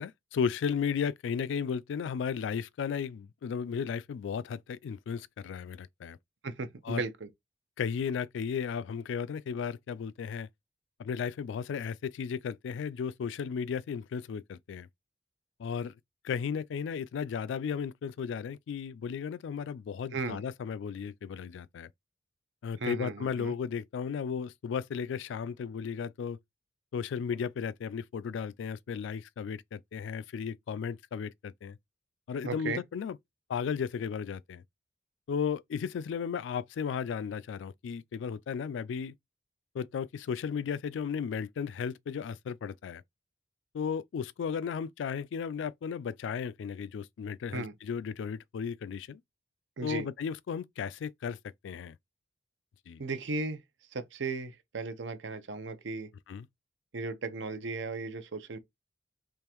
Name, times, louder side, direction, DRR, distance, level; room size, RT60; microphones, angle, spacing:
voice 1, 0.0-6.2 6.8-7.0 7.8-10.5 11.0-14.9 15.6-15.9 16.2-21.9 22.6-26.4 26.9-31.8 32.3-33.2 33.5-34.6 35.3-39.1 39.7-43.0 43.7-49.2 49.8-51.4 51.6-52.0 52.9-53.0 56.3-56.5, left 6 dB, 85° left, 0.3 m, -35 dB
voice 2, 6.4-7.3 20.1-20.4 22.8-23.5 32.4-32.8 47.5-47.7 49.8-50.1 53.0-53.6 53.9-56.1 56.9-58.6, right 3 dB, 85° right, 0.7 m, -36 dB
3.6 x 3.3 x 2.9 m
head